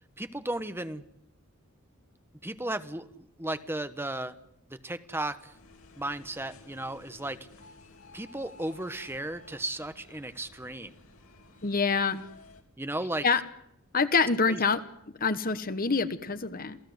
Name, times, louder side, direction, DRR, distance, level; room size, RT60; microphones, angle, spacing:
voice 1, 0.2-1.0 2.4-4.3 4.7-5.5 6.0-7.4 8.1-10.9 12.8-13.2 14.5-14.6, right 1 dB, 10° right, 11 dB, 1.1 m, -35 dB
sound 1, 5.4-12.6, left 3 dB, 75° left, 3.5 m, -54 dB
voice 2, 11.6-12.3 13.2-13.4 13.9-14.8 15.2-16.8, left 4 dB, 40° left, 12 dB, 1.2 m, -26 dB
28.0 x 17.0 x 7.9 m, 0.78 s
head